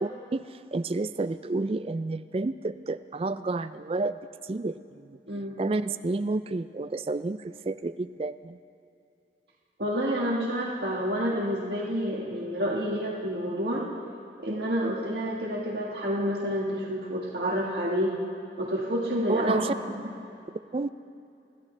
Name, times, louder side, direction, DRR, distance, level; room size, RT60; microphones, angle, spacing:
voice 1, 0.0-4.2 4.4-5.2 5.6-8.6 19.3-19.7 20.7-20.9, right 3 dB, 35° right, 12 dB, 0.3 m, -30 dB
voice 2, 9.8-13.8 14.4-18.1 18.6-19.7 20.0-20.1, equal, 70° right, -4 dB, 1.7 m, -29 dB
25.5 x 13.5 x 3.3 m, 2.6 s
head